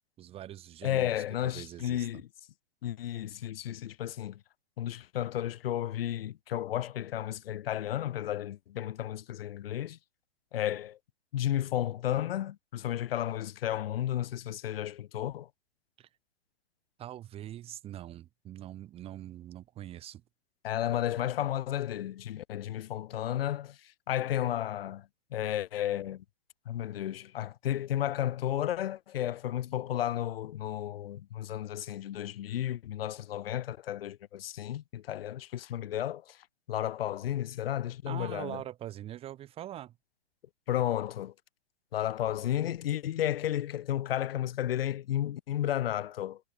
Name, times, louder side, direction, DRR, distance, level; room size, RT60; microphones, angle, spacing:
voice 1, 0.2-2.1 16.0-16.1 17.0-20.2 38.1-39.9, right 12 dB, 15° right, 1.5 m, -43 dB
voice 2, 0.8-2.3 2.8-4.4 4.8-10.0 10.5-11.0 11.3-15.5 20.6-26.2 26.7-36.4 36.7-38.6 40.7-41.3 41.9-46.4, left 12 dB, 60° left, 3.6 m, -33 dB
hypercardioid pair, 155°, 33 cm